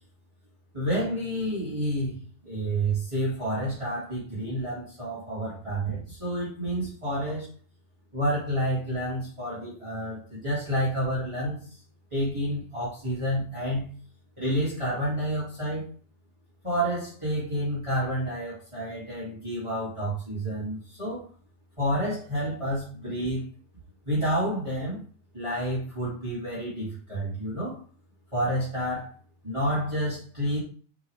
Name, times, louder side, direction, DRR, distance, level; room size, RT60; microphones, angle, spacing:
voice 1, 0.7-2.2 2.4-7.4 8.1-11.6 12.1-13.9 14.4-15.9 16.6-21.2 21.8-23.4 24.0-25.0 25.3-27.7 28.3-29.1 29.4-30.6, equal, 15° right, -9 dB, 0.9 m, -29 dB
6.1 x 5.4 x 3.4 m, 0.43 s
omnidirectional pair, 5.3 m